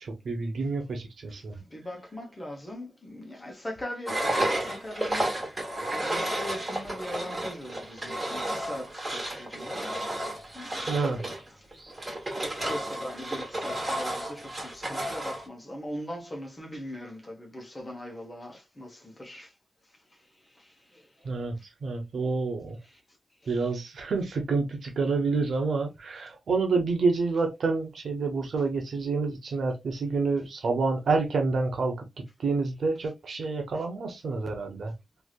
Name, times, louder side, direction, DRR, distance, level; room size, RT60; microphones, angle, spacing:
voice 1, 0.0-1.6 10.9-11.2 21.2-21.5 21.8-22.8 23.5-32.0 32.4-34.9, right 4 dB, 80° right, 0.9 m, -28 dB
voice 2, 1.6-5.3 6.0-10.0 10.5-11.3 12.4-19.5, left 1 dB, 20° left, 1.0 m, -40 dB
Engine, 4.1-15.5, right 1 dB, 25° right, 1.5 m, -32 dB
3.3 x 2.7 x 2.3 m
wide cardioid pair, 145°, 0 cm